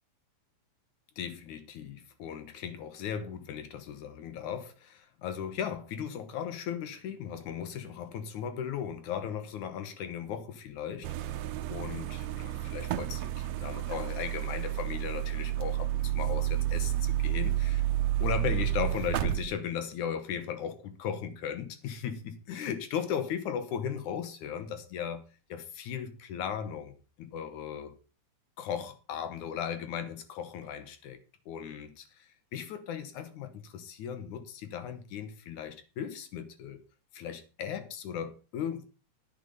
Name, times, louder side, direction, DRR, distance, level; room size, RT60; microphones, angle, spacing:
voice 1, 1.2-11.4 11.7-17.8 18.2-25.2 25.5-28.0 28.6-31.2 31.5-36.8 37.1-38.8, left 8 dB, 70° left, 2.4 m, -37 dB
sound 1, 11.0-19.4, right 13 dB, 75° right, 1.7 m, -30 dB
9.7 x 9.1 x 5.4 m
omnidirectional pair, 3.7 m